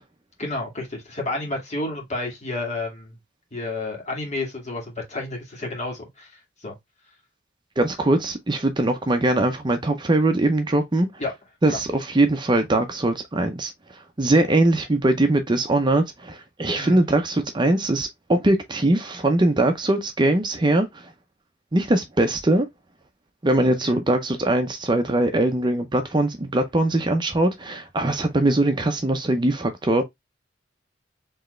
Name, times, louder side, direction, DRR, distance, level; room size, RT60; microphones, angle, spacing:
voice 1, 0.4-3.2 3.5-6.7 11.2-11.3 11.7-11.8 16.7-17.0 23.8-24.0, left 2 dB, 40° left, 2.0 m, -31 dB
voice 2, 7.8-11.1 11.6-13.7 14.2-21.1 21.7-22.7 23.4-30.0, right 2 dB, 25° right, 0.6 m, -21 dB
4.5 x 3.3 x 3.1 m
head